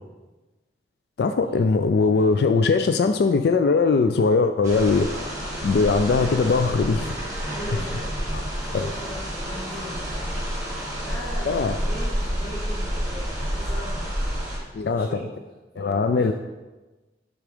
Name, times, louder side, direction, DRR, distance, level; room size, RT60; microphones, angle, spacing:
voice 1, 1.2-7.1 8.7-8.9 11.5-11.7 14.7-15.1 15.8-16.3, left 4 dB, 65° left, 8 dB, 0.3 m, -21 dB
sound 1, 4.6-14.6, equal, 15° right, 1.9 m, -29 dB
voice 2, 7.4-15.3 15.7-16.3, equal, 10° left, -14 dB, 1.9 m, -40 dB
8.4 x 3.6 x 5.0 m, 1.2 s
head